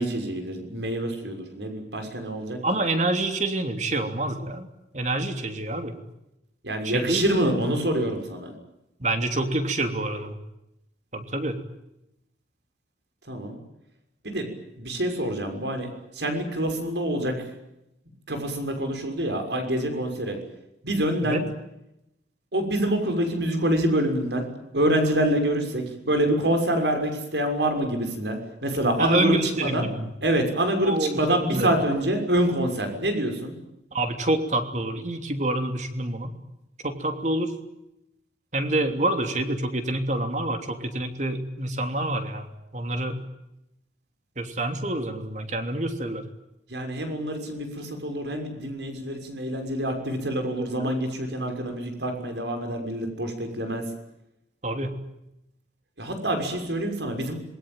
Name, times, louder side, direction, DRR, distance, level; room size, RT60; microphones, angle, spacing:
voice 1, 0.0-2.6 6.6-8.5 13.3-13.6 14.2-14.5 14.8-17.3 18.3-20.4 20.8-21.4 22.5-24.4 24.7-29.9 30.2-33.6 46.7-53.8 56.0-57.3, right 1 dB, 80° right, 5 dB, 6.4 m, -26 dB
voice 2, 2.6-4.7 4.9-6.0 6.8-7.2 9.0-10.4 11.1-11.6 21.2-21.4 29.0-30.1 30.8-31.7 33.9-36.3 36.8-37.5 38.5-42.5 42.7-43.2 44.4-46.2 50.5-50.9 54.6-54.9, right 1 dB, 45° right, 6 dB, 3.2 m, -27 dB
27.0 x 22.0 x 9.3 m, 0.86 s
head